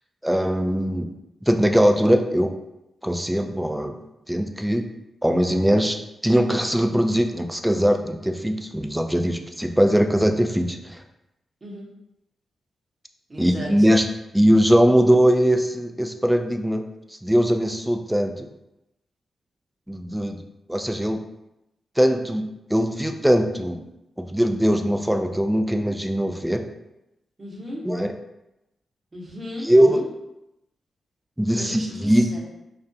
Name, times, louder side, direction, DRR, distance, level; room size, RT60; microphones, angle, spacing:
voice 1, 0.2-1.1 1.5-2.5 3.0-4.0 4.3-4.8 5.2-6.0 6.2-11.0 13.4-14.0 14.3-16.8 17.2-18.5 19.9-20.4 20.7-21.2 22.0-23.8 24.2-26.6 27.9-28.1 29.6-30.0 31.4-32.3, equal, 5° right, 5 dB, 0.3 m, -20 dB
voice 2, 13.3-13.9 27.4-27.9 29.1-30.1 31.5-32.4, equal, 40° right, -3 dB, 0.9 m, -36 dB
2.4 x 2.1 x 2.6 m, 0.90 s
supercardioid pair, 40°, 0 cm